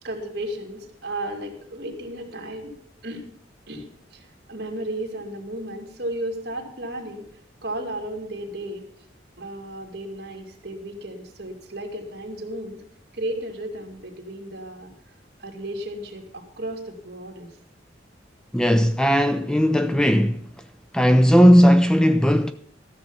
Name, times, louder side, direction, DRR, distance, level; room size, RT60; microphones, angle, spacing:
voice 1, 0.0-2.7 3.0-3.3 3.7-7.3 7.6-8.8 9.4-12.8 13.1-14.9 15.4-17.5, right 1 dB, 60° right, 2.4 m, -34 dB
voice 2, 18.5-20.4 20.9-22.5, equal, 5° left, 0.4 m, -17 dB
13.5 x 7.0 x 7.1 m
head